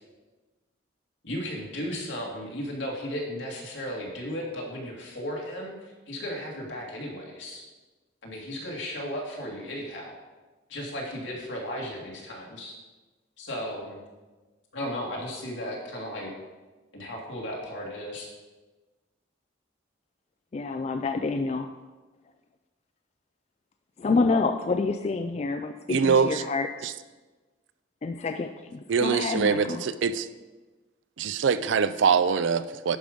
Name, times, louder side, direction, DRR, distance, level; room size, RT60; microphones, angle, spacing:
voice 1, 1.2-7.6 8.2-10.2 10.7-12.7 13.4-14.0 14.7-16.3 16.9-18.3, equal, 75° left, -2 dB, 2.2 m, -35 dB
voice 2, 20.5-21.7 24.0-26.9 28.0-29.8, left 3 dB, 35° left, 7 dB, 0.3 m, -28 dB
voice 3, 25.9-26.4 26.8-26.9 28.9-30.3 31.2-33.0, right 6 dB, 80° right, 13 dB, 0.4 m, -23 dB
10.5 x 5.0 x 5.2 m, 1.2 s
head